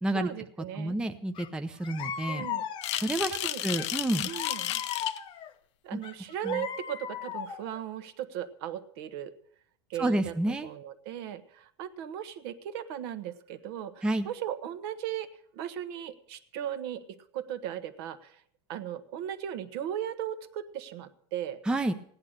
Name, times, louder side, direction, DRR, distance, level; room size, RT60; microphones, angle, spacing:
voice 1, 0.1-0.9 2.3-2.6 3.3-3.6 4.2-4.8 5.8-9.3 9.9-18.4 18.7-21.6, right 10 dB, 60° right, 11 dB, 1.3 m, -37 dB
voice 2, 0.7-2.5 2.9-3.3 3.6-4.3 5.9-6.0 6.4-6.6 10.0-10.7 14.0-14.3 21.7-21.9, right 1 dB, 5° right, 7 dB, 0.6 m, -29 dB
sound 1, 1.3-1.5 1.8-3.2 3.7-5.5 6.0-7.8, left 9 dB, 35° left, 0.9 m, -37 dB
sound 2, 2.8-5.2, left 13 dB, 80° left, 0.7 m, -33 dB
16.0 x 10.5 x 6.6 m, 0.63 s
supercardioid pair, 145°, 14 cm